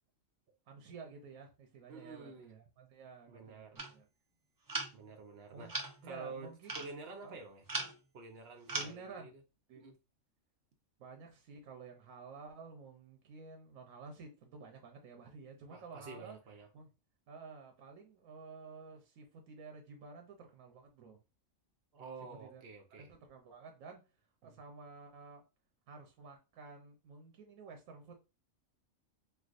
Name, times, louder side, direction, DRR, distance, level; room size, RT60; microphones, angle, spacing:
voice 1, 0.7-4.1 5.5-5.7 6.0-6.8 7.2-7.4 8.7-9.3 9.7-9.8 11.0-16.4 16.7-16.9 17.3-21.2 22.2-22.6 23.0-24.0 24.4-25.4 25.9-28.2, right 4 dB, 85° right, 1.1 m, -52 dB
voice 2, 1.9-2.6 3.3-3.8 4.9-7.7 8.1-9.3 9.8-9.9 15.7-16.7 21.9-23.1 24.4-24.6, right 4 dB, 55° right, 0.9 m, -49 dB
sound 1, 3.8-4.0 4.7-5.1 5.7-6.1 6.6-6.9 7.7-8.0 8.7-8.9, right 3 dB, 35° right, 0.3 m, -39 dB
4.5 x 2.3 x 2.4 m
omnidirectional pair, 1.4 m